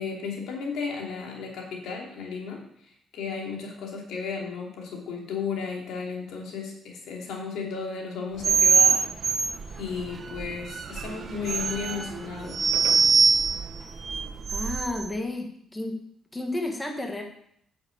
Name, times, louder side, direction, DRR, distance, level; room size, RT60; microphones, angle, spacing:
voice 1, 0.0-9.0 9.3-9.5 9.8-12.7, left 5 dB, 80° left, 0 dB, 3.0 m, -34 dB
sound 1, 8.4-15.1, right 5 dB, 45° right, 1.0 m, -24 dB
voice 2, 14.5-16.0 16.3-17.2, left 2 dB, 10° left, 2 dB, 1.8 m, -32 dB
9.6 x 7.0 x 7.3 m, 0.69 s
cardioid pair, 125°, 0 cm